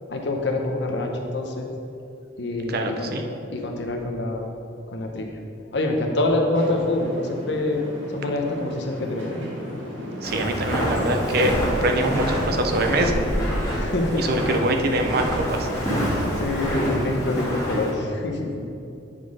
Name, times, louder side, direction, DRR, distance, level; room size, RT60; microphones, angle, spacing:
voice 1, 0.1-1.7 2.4-3.1 3.5-4.5 4.9-5.4 5.7-7.9 8.1-9.3 13.7-14.2 16.1-18.6, left 2 dB, 60° left, 2 dB, 0.8 m, -26 dB
voice 2, 2.7-3.2 10.2-13.3 14.2-15.7, right 1 dB, 50° right, 4 dB, 0.5 m, -24 dB
sound 1, 6.5-13.5, equal, 75° right, 1.5 m, -36 dB
Walk footsteps, 10.2-17.9, equal, 15° left, 1.8 m, -26 dB
9.1 x 4.1 x 4.8 m, 2.7 s
head